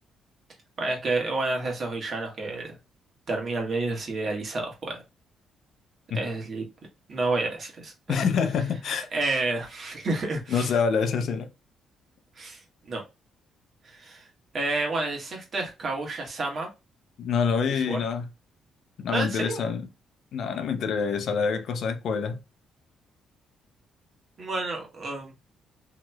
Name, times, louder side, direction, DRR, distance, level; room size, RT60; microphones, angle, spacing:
voice 1, 0.8-2.8 3.3-5.0 6.1-6.7 7.1-7.9 9.1-10.7 12.4-13.0 13.8-14.2 14.5-16.7 17.5-18.0 19.1-19.6 24.4-25.3, right 2 dB, 50° right, 1.4 m, -30 dB
voice 2, 8.1-9.1 10.5-11.5 17.2-18.2 19.0-19.9 20.3-22.4, left 6 dB, 70° left, 0.5 m, -26 dB
2.9 x 2.9 x 2.2 m
cardioid pair, 90°, 0 cm